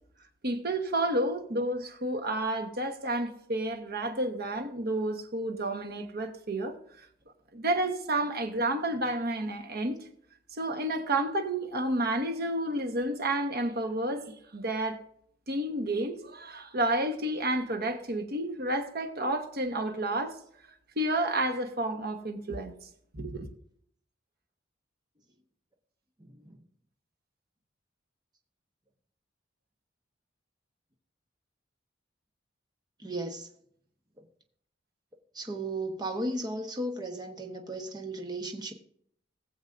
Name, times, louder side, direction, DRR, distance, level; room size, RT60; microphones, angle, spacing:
voice 1, 0.4-6.8 7.5-10.0 10.6-15.0 15.5-20.4 21.0-22.9 23.1-23.5, right 1 dB, 55° right, 1.3 m, -30 dB
voice 2, 26.2-26.6 33.0-33.5 34.2-34.3 35.3-38.7, right 1 dB, 20° right, 1.2 m, -35 dB
20.0 x 7.2 x 2.6 m
head